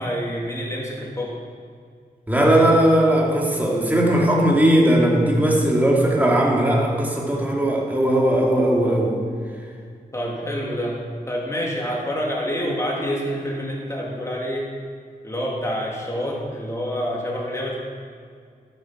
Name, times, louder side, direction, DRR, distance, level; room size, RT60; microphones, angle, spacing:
voice 1, 0.0-1.4 10.1-14.7 15.2-17.8, equal, 20° left, -3 dB, 3.0 m, -27 dB
voice 2, 2.3-9.2, right 1 dB, 10° right, -3 dB, 2.6 m, -18 dB
12.5 x 8.2 x 6.0 m, 2.1 s
wide cardioid pair, 90°, 16 cm